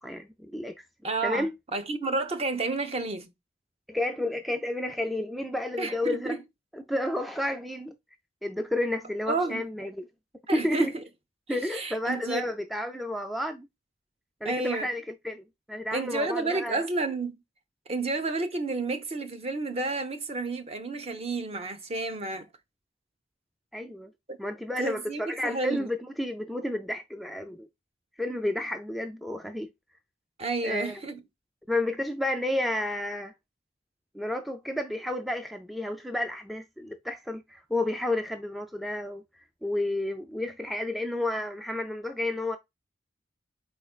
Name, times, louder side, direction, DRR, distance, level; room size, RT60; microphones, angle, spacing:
voice 1, 0.0-0.8 1.2-1.5 3.9-6.4 6.7-7.9 8.4-10.1 10.5-10.9 11.5-13.7 14.4-16.8 23.7-24.1 24.4-27.7 28.2-29.7 30.6-30.9 31.7-33.3 34.1-39.2 39.6-42.6, left 1 dB, ahead, 0.3 m, -31 dB
voice 2, 1.0-3.3 5.8-6.4 9.3-9.6 10.5-10.9 11.5-12.4 14.4-14.9 15.9-17.4 17.9-22.5 24.3-24.4 24.8-25.9 30.4-31.2, right 3 dB, 35° right, 0.7 m, -31 dB
4.4 x 4.2 x 2.4 m
head